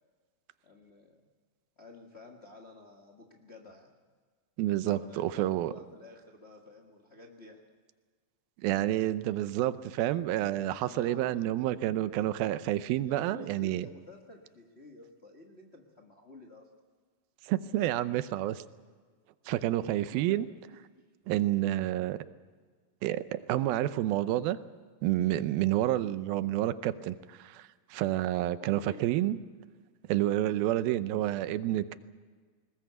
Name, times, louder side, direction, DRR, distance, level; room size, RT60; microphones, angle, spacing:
voice 1, 0.6-1.2 1.8-3.9 4.9-7.6 10.8-11.5 13.0-16.7 20.1-20.4 20.9-21.0 28.6-29.0, left 2 dB, 45° left, 1 dB, 0.8 m, -51 dB
voice 2, 4.6-5.7 8.6-13.9 17.5-18.6 19.5-20.5 21.3-22.2 23.0-24.6 25.0-29.4 30.1-32.0, right 14 dB, 85° right, 13 dB, 2.6 m, -29 dB
20.0 x 19.5 x 8.1 m, 1.5 s
omnidirectional pair, 4.2 m